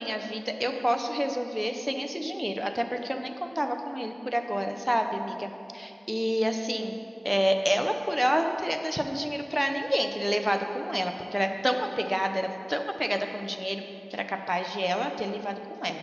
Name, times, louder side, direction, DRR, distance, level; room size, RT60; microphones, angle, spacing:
voice 1, 0.0-7.0 7.2-13.8 14.1-16.0, equal, 10° right, 5 dB, 0.4 m, -29 dB
5.2 x 4.5 x 5.4 m, 2.8 s
wide cardioid pair, 50°, 0 cm